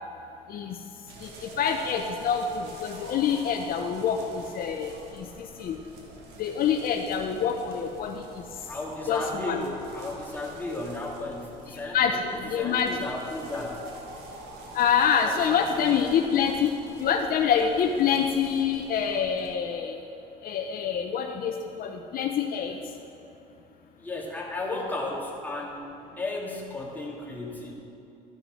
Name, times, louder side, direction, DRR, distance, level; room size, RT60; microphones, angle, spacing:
sound 1, 1.1-19.5, right 2 dB, 85° right, 1.6 m, -45 dB
voice 1, 1.2-5.8 6.4-8.2 9.1-9.6 11.9-12.1 12.5-13.0 14.7-16.7 17.0-20.0 20.4-22.8, left 7 dB, 60° left, 4 dB, 0.6 m, -26 dB
voice 2, 8.7-13.8 15.2-16.0 24.0-25.9 26.2-27.8, left 2 dB, 10° left, -3 dB, 2.2 m, -34 dB
13.0 x 6.4 x 6.3 m, 2.9 s
cardioid pair, 110°, 17 cm